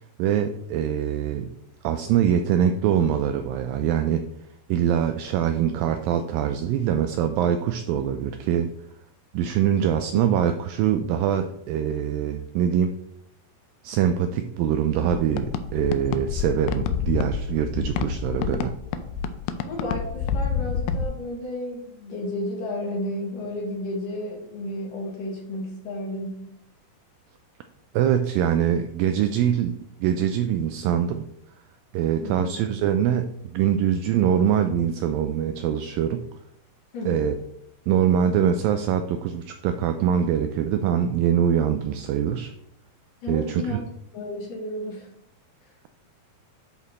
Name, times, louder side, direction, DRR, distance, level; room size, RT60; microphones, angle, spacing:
voice 1, 0.2-1.5 1.8-4.3 4.7-8.7 9.3-12.9 13.8-18.7 27.9-31.2 31.9-36.3 37.1-37.3 37.9-42.5 43.3-43.8, right 9 dB, 85° right, 7 dB, 2.0 m, -23 dB
sound 1, 15.0-21.1, left 6 dB, 85° left, 2.5 m, -28 dB
voice 2, 19.6-26.5 32.2-32.5 36.9-37.2 43.2-43.8 44.1-45.1, left 1 dB, 65° left, -2 dB, 3.5 m, -32 dB
10.5 x 4.1 x 4.2 m, 0.76 s
omnidirectional pair, 4.5 m